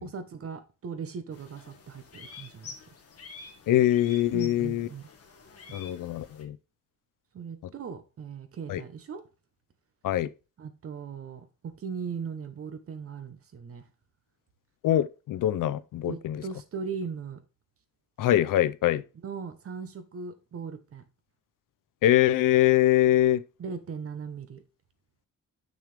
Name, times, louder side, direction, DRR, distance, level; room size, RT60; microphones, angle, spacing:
voice 1, 0.0-2.7 4.3-5.1 5.7-5.8 7.3-9.2 10.6-13.9 16.0-17.4 19.2-21.0 23.6-24.6, right 6 dB, 40° right, 1.1 m, -38 dB
sound 1, 1.3-6.4, left 4 dB, 45° left, 1.7 m, -48 dB
voice 2, 3.7-4.9 5.7-6.6 8.7-8.8 10.0-10.3 14.8-16.4 18.2-19.0 22.0-23.4, left 13 dB, 70° left, 0.6 m, -23 dB
6.6 x 6.3 x 3.4 m
wide cardioid pair, 170°, 34 cm